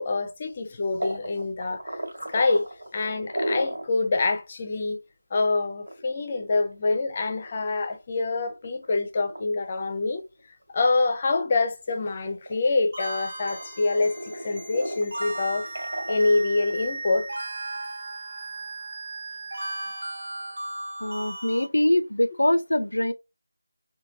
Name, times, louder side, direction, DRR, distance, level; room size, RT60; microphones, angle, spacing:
voice 1, 0.0-2.0 2.3-2.7 2.9-5.0 5.3-10.3 10.7-15.7 16.1-17.3, left 3 dB, 25° left, 0.4 m, -26 dB
sound 1, 1.0-3.9 4.3-4.4 4.8-4.9 5.6-7.9 8.4-8.9 9.3-9.4 10.0-10.9 11.2-13.1 13.5-17.0, right 1 dB, 75° right, 1.5 m, -35 dB
sound 2, 12.9-21.7, right 2 dB, 55° right, 1.0 m, -36 dB
voice 2, 21.0-23.1, left 1 dB, 90° left, 0.4 m, -23 dB
3.0 x 2.2 x 2.6 m
figure-of-eight pair, 175°, 0 cm